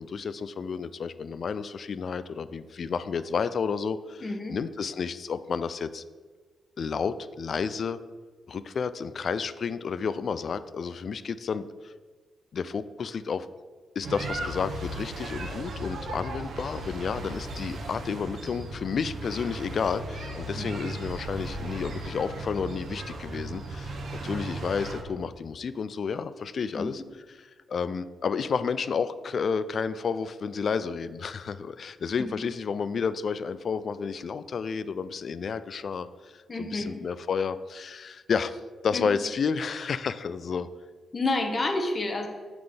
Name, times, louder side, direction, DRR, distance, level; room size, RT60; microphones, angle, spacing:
voice 1, 0.0-6.0 6.8-8.0 8.5-11.9 12.5-13.5 14.0-24.0 24.2-27.0 27.7-40.7, left 6 dB, 55° left, 14 dB, 0.3 m, -31 dB
voice 2, 4.2-4.6 20.5-20.7 26.7-26.9 32.2-32.5 36.5-36.9 38.9-39.1 41.1-42.3, left 2 dB, 35° left, 4 dB, 1.0 m, -29 dB
sound 1, 14.0-25.0, right 2 dB, 75° right, 0.9 m, -36 dB
5.9 x 3.7 x 5.0 m, 1.4 s
cardioid pair, 85°, 0 cm